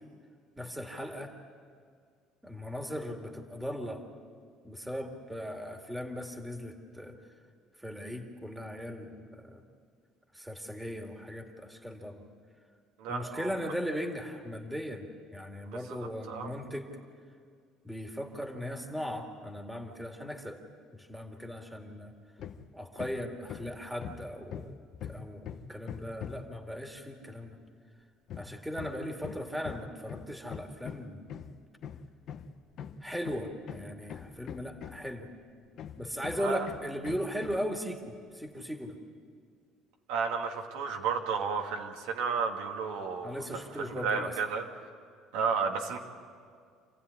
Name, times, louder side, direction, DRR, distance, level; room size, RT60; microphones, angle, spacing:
voice 1, 0.6-1.3 2.4-4.0 4.6-7.1 7.8-9.6 10.3-12.2 13.1-15.1 15.3-16.9 17.8-20.6 20.9-22.1 22.7-24.8 25.0-27.6 28.4-31.3 33.0-35.3 36.0-39.0 43.2-44.4, equal, 5° right, 3 dB, 2.3 m, -38 dB
voice 2, 13.0-13.5 15.6-16.5 36.4-36.7 40.1-44.9 45.3-46.0, right 5 dB, 85° right, 1 dB, 2.5 m, -33 dB
Hammer, 22.4-22.7 23.0-26.6 28.3-35.2 35.8-37.7, left 8 dB, 55° left, 1.2 m, -43 dB
27.5 x 15.5 x 9.9 m, 2.1 s
cardioid pair, 125°, 0 cm